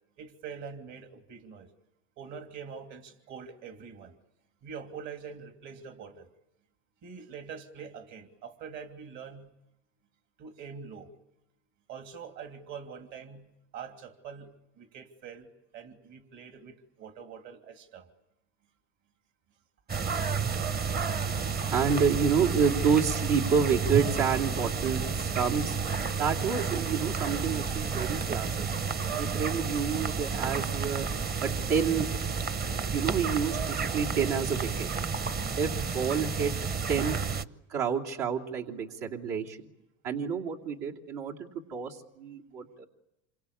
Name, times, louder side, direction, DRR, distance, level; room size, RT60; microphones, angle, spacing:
voice 1, 0.2-1.7 2.2-4.1 4.6-6.3 7.0-9.6 10.4-11.1 11.9-15.5 15.7-18.1 19.9-20.0 20.7-21.1, right 6 dB, 55° right, 5 dB, 3.1 m, -44 dB
sound 1, 19.9-37.5, right 5 dB, 25° right, 1.0 m, -31 dB
voice 2, 21.7-25.8 26.2-28.7 29.2-31.1 31.4-32.3 32.8-34.9 35.6-36.6 36.9-37.2 37.7-39.6 40.0-42.9, right 6 dB, 75° right, -1 dB, 2.9 m, -29 dB
28.0 x 24.0 x 8.5 m, 0.89 s
supercardioid pair, 110°, 34 cm